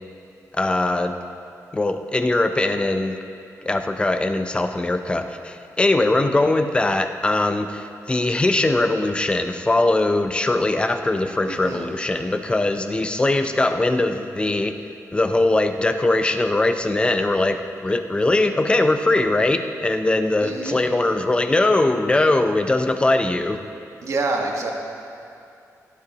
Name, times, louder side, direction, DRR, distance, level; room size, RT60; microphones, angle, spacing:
voice 1, 0.5-1.1 1.7-3.2 3.7-14.8 15.1-23.6, left 2 dB, 15° left, 7 dB, 0.6 m, -21 dB
voice 2, 11.5-11.9 20.4-20.8 24.0-24.7, right 3 dB, 55° right, 1 dB, 1.4 m, -27 dB
16.0 x 11.5 x 2.9 m, 2.7 s
wide cardioid pair, 130°, 6 cm